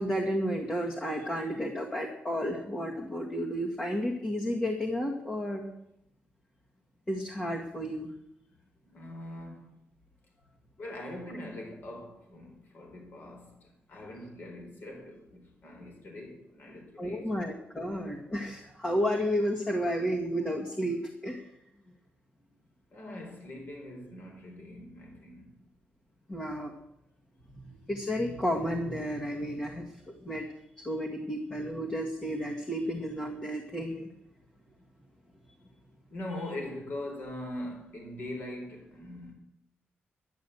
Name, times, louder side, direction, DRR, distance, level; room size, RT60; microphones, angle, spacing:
voice 1, 0.0-5.7 7.1-8.1 17.0-21.4 26.3-26.7 27.5-27.6 27.9-29.9 30.2-30.5 30.8-34.1, equal, 20° left, 1.9 m, -32 dB
voice 2, 8.8-9.7 10.8-17.5 22.4-22.5 22.9-25.6 36.1-39.3, left 1 dB, 50° left, 4.1 m, -42 dB
11.0 x 10.5 x 8.0 m
wide cardioid pair, 135°, 4 cm